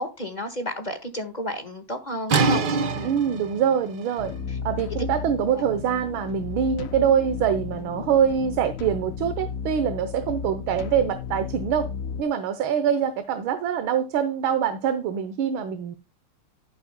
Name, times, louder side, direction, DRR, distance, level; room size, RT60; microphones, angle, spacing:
voice 1, 0.0-2.6 2.9-3.1 4.5-4.6 4.9-5.0, equal, 25° left, 1.3 m, -32 dB
sound 1, 2.3-7.9, right 4 dB, 60° right, 1.7 m, -29 dB
voice 2, 3.0-4.3 4.6-11.9 12.2-16.0, right 8 dB, 75° right, 1.7 m, -24 dB
sound 2, 4.2-12.2, left 6 dB, 60° left, 0.9 m, -34 dB
11.0 x 9.5 x 2.2 m
omnidirectional pair, 2.3 m